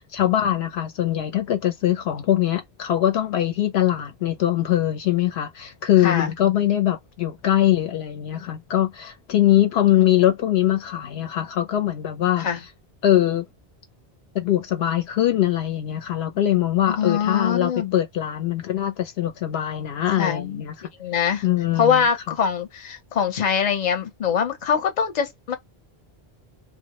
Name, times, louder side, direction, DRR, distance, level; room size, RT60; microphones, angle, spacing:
voice 1, 0.0-12.5 13.0-13.4 14.3-20.7 21.4-22.0, left 12 dB, 80° left, 0.8 m, -22 dB
voice 2, 16.9-17.9 20.2-20.6 21.0-21.4 21.7-25.6, left 7 dB, 45° left, 0.7 m, -23 dB
2.1 x 2.0 x 2.9 m
omnidirectional pair, 1.1 m